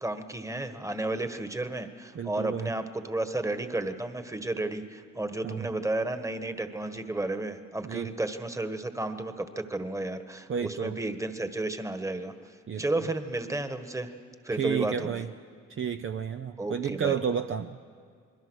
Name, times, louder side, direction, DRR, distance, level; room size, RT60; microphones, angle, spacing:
voice 1, 0.0-12.5 12.8-14.1 14.4-15.2 16.6-17.2, right 2 dB, 10° right, 8 dB, 1.5 m, -32 dB
voice 2, 2.1-2.7 5.4-5.7 7.8-8.1 10.5-11.0 12.7-13.0 14.5-15.3 15.7-17.8, right 7 dB, 45° right, 7 dB, 0.8 m, -31 dB
27.0 x 21.5 x 6.4 m, 2.2 s
cardioid pair, 90°, 30 cm